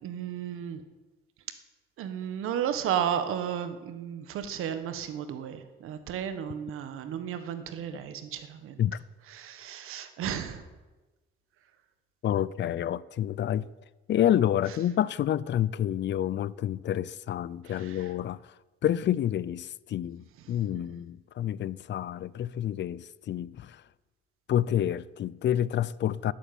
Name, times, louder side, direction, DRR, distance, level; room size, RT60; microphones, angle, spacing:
voice 1, 0.0-0.8 2.0-8.8 9.3-10.6 17.6-18.1 20.7-21.0, right 9 dB, 90° right, 1.3 m, -34 dB
voice 2, 12.2-13.7 14.1-18.4 18.8-23.7 24.5-26.3, left 11 dB, 60° left, 0.5 m, -28 dB
12.5 x 8.6 x 9.1 m
cardioid pair, 90°, 21 cm